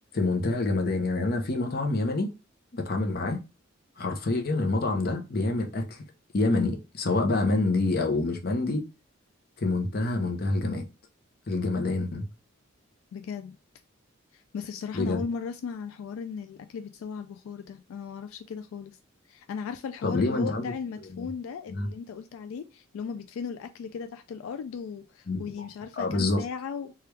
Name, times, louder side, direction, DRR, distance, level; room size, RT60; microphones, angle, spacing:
voice 1, 0.1-2.3 2.7-3.4 4.0-6.0 6.3-8.8 9.6-10.8 11.5-12.3 14.9-15.2 20.0-20.7 21.2-21.3 21.7-21.9 25.3-25.4 26.0-26.4, left 2 dB, 45° left, 0.6 m, -27 dB
voice 2, 13.1-13.6 14.3-19.0 19.3-26.9, left 6 dB, 85° left, 0.3 m, -37 dB
3.3 x 2.3 x 3.1 m
head